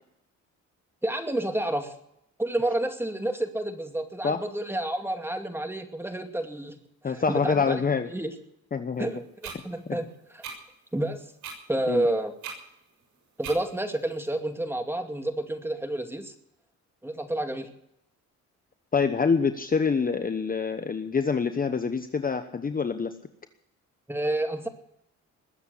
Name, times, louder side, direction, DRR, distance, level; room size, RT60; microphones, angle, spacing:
voice 1, 1.0-1.9 2.4-6.8 7.0-7.8 8.1-8.3 9.0-10.0 10.3-10.4 10.9-11.2 11.7-12.3 13.4-16.3 17.0-17.7 24.1-24.7, right 1 dB, 10° right, 5 dB, 2.4 m, -29 dB
voice 2, 7.0-8.1 8.7-9.1 9.9-10.0 11.9-12.1 18.9-23.2, left 5 dB, 30° left, 9 dB, 1.0 m, -26 dB
sound 1, 9.4-9.6 10.4-10.6 11.4-11.6 12.4-12.6 13.4-13.6, right 6 dB, 75° right, 6.7 m, -37 dB
21.0 x 8.1 x 8.3 m, 0.79 s
cardioid pair, 90°, 30 cm